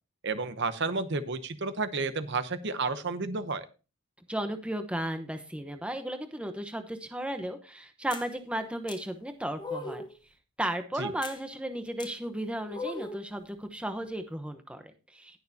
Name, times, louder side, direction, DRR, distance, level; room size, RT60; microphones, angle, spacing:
voice 1, 0.2-3.7 11.0-11.1, right 3 dB, 50° right, 11 dB, 0.8 m, -31 dB
voice 2, 4.3-10.0 10.6-15.4, right 1 dB, 5° right, 7 dB, 0.9 m, -35 dB
sound 1, 8.1-8.3 8.9-9.0 9.6-10.1 11.2-11.4 12.0-12.1 12.7-13.3, left 3 dB, 20° left, 1.1 m, -38 dB
19.0 x 6.7 x 2.8 m, 0.32 s
head